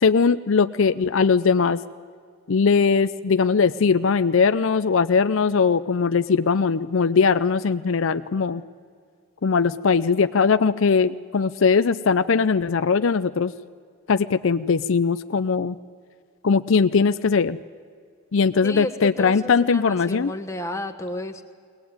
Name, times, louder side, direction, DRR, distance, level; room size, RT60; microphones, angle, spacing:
voice 1, 0.0-1.8 2.5-8.6 9.4-13.5 14.1-15.8 16.4-17.6 18.3-20.3, left 5 dB, 65° left, 12 dB, 0.5 m, -20 dB
voice 2, 18.6-21.4, left 1 dB, 15° left, 4 dB, 1.2 m, -32 dB
21.5 x 19.0 x 9.4 m, 2.1 s
head